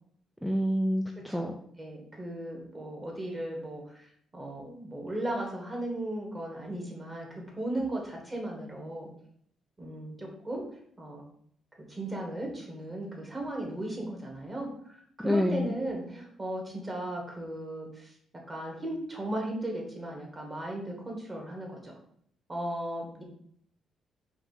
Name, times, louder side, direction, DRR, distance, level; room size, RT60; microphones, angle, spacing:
voice 1, 0.4-1.6 15.2-15.8, left 1 dB, ahead, 3 dB, 0.4 m, -27 dB
voice 2, 1.8-4.1 4.3-9.1 9.8-10.6 11.0-11.2 11.8-14.7 15.2-18.1 18.5-22.0 22.5-23.2, right 1 dB, 20° right, 0 dB, 1.5 m, -36 dB
4.6 x 2.6 x 4.0 m, 0.65 s
cardioid pair, 90°, 0 cm